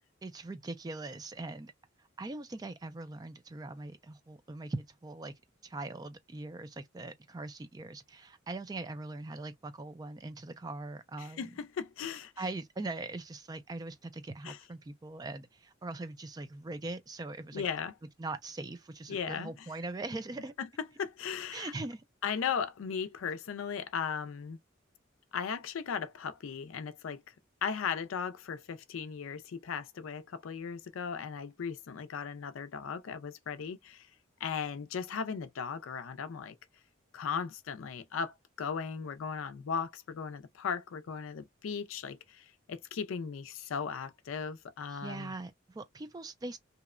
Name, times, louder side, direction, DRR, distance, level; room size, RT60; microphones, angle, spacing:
voice 1, 0.2-1.7 2.2-5.3 5.6-11.5 12.4-17.6 18.2-20.5 21.5-22.0 44.9-46.6, right 2 dB, 20° right, 0.3 m, -41 dB
voice 2, 11.2-12.3 14.4-14.6 17.5-17.9 19.1-19.5 20.6-20.7 21.0-21.7 22.2-24.6 25.3-27.2 27.6-34.1 34.4-36.6 37.1-45.3, left 6 dB, 85° left, 0.4 m, -37 dB
2.8 x 2.1 x 2.3 m
head